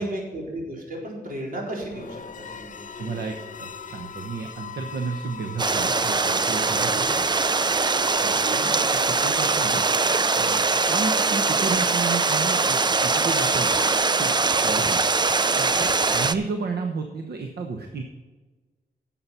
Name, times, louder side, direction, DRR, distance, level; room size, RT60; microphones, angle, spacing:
voice 1, 0.0-3.2 6.9-7.1 8.4-8.7 14.8-14.9, right 1 dB, 60° right, -2 dB, 4.1 m, -34 dB
sound 1, 1.8-11.8, left 6 dB, 50° left, 0.6 m, -41 dB
voice 2, 3.0-7.2 8.2-8.4 8.9-9.8 10.3-10.6 10.9-13.7 14.1-14.3 14.6-15.0 15.6-18.0, right 4 dB, 75° right, 4 dB, 1.1 m, -32 dB
Stream, 5.6-16.3, right 4 dB, 25° right, 0.5 m, -22 dB
11.0 x 7.7 x 5.7 m, 1.3 s
wide cardioid pair, 120°, 17 cm